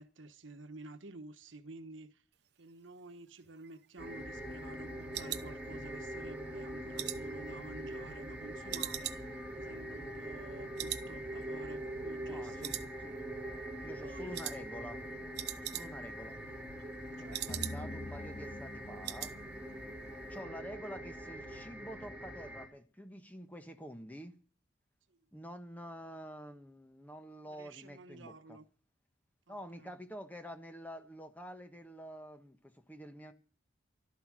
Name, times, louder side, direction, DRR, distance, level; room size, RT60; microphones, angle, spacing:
voice 1, 0.0-2.2 2.6-9.1 9.5-12.7 13.8-14.4 15.7-16.0 17.2-17.5 20.4-20.5 27.5-28.7 29.5-29.9, right 2 dB, 75° right, 1.2 m, -51 dB
sound 1, 3.4-6.2 6.6-8.3 8.7-10.5 10.8-11.1 11.4-11.5 11.9-12.4 12.6-13.4 13.7-14.0 14.3-14.6 14.9-15.0 15.2-16.2 16.5-18.1 18.4-18.5 18.8-19.4 19.7-19.9 20.2-20.3, right 13 dB, 55° right, 0.9 m, -42 dB
sound 2, 4.0-22.7, right 1 dB, 5° right, 3.6 m, -43 dB
voice 2, 12.3-13.2 13.8-15.0 15.6-16.4 17.2-19.3 20.3-24.3 25.3-28.6 29.5-33.3, equal, 10° left, 1.2 m, -48 dB
sound 3, 17.5-20.4, left 2 dB, 45° left, 2.0 m, -45 dB
13.5 x 12.5 x 6.3 m
head